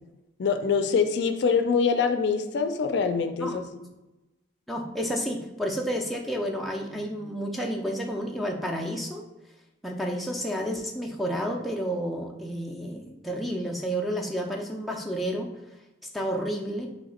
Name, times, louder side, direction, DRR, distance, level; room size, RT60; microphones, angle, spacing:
voice 1, 0.4-3.7 6.9-7.1, left 5 dB, 70° left, 7 dB, 0.4 m, -24 dB
voice 2, 4.7-9.2 9.8-15.5 16.0-16.9, equal, ahead, 1 dB, 0.3 m, -30 dB
3.1 x 2.8 x 4.2 m, 1.0 s
head